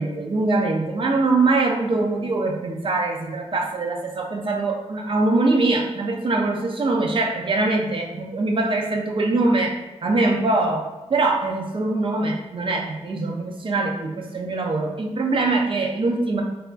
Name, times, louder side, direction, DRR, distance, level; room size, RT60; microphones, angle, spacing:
voice 1, 0.0-16.4, right 2 dB, 45° right, 1 dB, 0.4 m, -23 dB
3.3 x 2.4 x 2.2 m, 1.1 s
wide cardioid pair, 145°, 12 cm